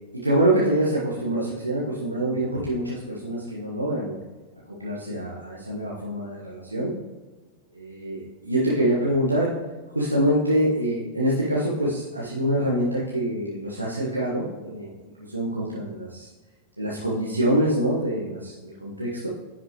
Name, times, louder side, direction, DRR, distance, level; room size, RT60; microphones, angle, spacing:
voice 1, 0.1-4.1 4.8-6.9 7.7-9.5 9.9-14.9 15.3-16.3 16.8-19.3, right 1 dB, 85° right, -6 dB, 1.4 m, -25 dB
10.0 x 5.8 x 3.0 m, 1.3 s
figure-of-eight pair, 90°, 0 cm